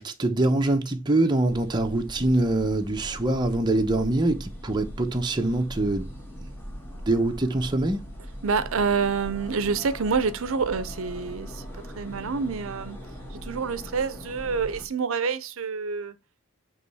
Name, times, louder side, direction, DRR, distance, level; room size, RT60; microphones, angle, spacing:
voice 1, 0.0-6.1 7.1-8.0, right 2 dB, 20° right, 0.8 m, -24 dB
sound 1, 1.5-14.8, equal, 10° left, 1.4 m, -40 dB
voice 2, 8.4-11.6 11.9-13.0 13.3-16.2, right 5 dB, 70° right, 0.6 m, -27 dB
7.5 x 3.1 x 4.0 m
head